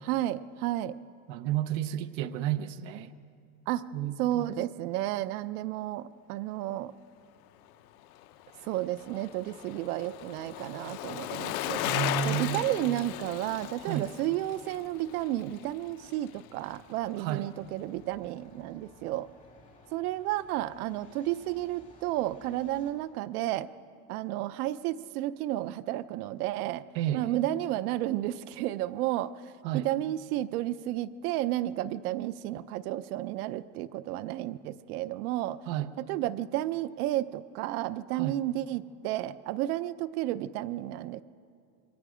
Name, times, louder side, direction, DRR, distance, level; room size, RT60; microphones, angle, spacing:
voice 1, 0.0-0.9 3.7-3.8 4.2-6.9 8.7-11.8 12.2-19.3 19.9-23.7 24.1-26.8 27.1-29.3 29.7-35.6 36.1-41.2, right 14 dB, 80° right, 14 dB, 0.7 m, -32 dB
voice 2, 1.3-3.1 3.9-4.5 11.8-12.7 13.8-14.1 17.2-17.5 26.9-27.4 29.6-29.9 35.7-35.9 38.1-38.4, right 11 dB, 45° right, 10 dB, 0.7 m, -32 dB
Bicycle, 8.0-16.4 16.7-16.8, left 13 dB, 80° left, 1.1 m, -37 dB
Truck, 13.3-22.9, left 2 dB, 15° left, 2.0 m, -59 dB
27.5 x 23.5 x 5.0 m, 2.4 s
cardioid pair, 180°, 44 cm